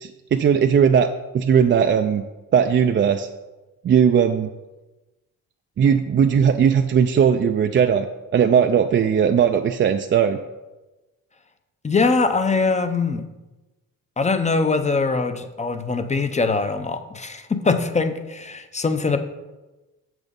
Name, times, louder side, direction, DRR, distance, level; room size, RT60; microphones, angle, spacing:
voice 1, 0.0-1.1 1.3-2.2 2.5-3.3 3.8-4.5 5.8-8.1 8.3-10.4, right 7 dB, 35° right, 6 dB, 0.4 m, -18 dB
voice 2, 11.8-13.2 14.2-19.2, left 4 dB, 20° left, 8 dB, 0.6 m, -22 dB
7.2 x 6.2 x 5.2 m, 1.1 s
cardioid pair, 120°, 35 cm